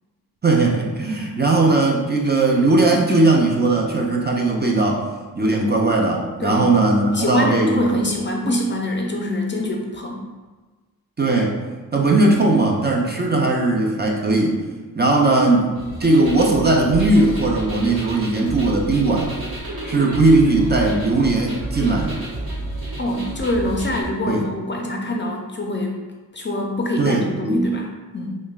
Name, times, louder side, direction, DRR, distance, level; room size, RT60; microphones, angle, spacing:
voice 1, 0.4-5.0 5.3-7.9 11.2-11.6 11.9-14.6 15.0-15.7 16.0-19.4 19.9-22.2 24.3-24.5 27.0-27.6, right 2 dB, 30° right, -1 dB, 0.5 m, -18 dB
voice 2, 7.1-10.2 23.0-26.0 26.3-28.4, left 1 dB, 35° left, 1 dB, 0.4 m, -24 dB
sound 1, 15.7-24.0, right 1 dB, 85° right, 0.9 m, -30 dB
5.2 x 2.1 x 2.4 m, 1.3 s
wide cardioid pair, 105°, 35 cm